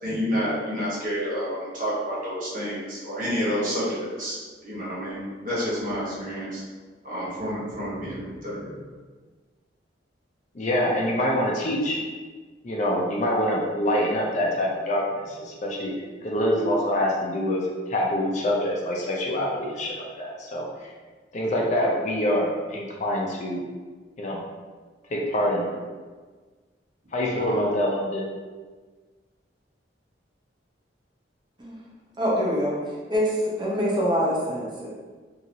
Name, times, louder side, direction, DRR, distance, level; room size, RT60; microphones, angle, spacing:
voice 1, 0.0-4.4 4.6-6.6 7.0-8.8 27.3-27.7, equal, 45° right, -8 dB, 1.1 m, -29 dB
voice 2, 10.5-12.0 12.6-15.9 16.2-17.6 17.9-20.9 21.3-23.6 24.2-24.4 25.1-25.7 27.1-28.2, left 1 dB, 40° left, -2 dB, 0.5 m, -25 dB
voice 3, 32.2-32.7 33.1-34.9, equal, 25° right, -5 dB, 0.7 m, -24 dB
2.8 x 2.8 x 2.6 m, 1.4 s
head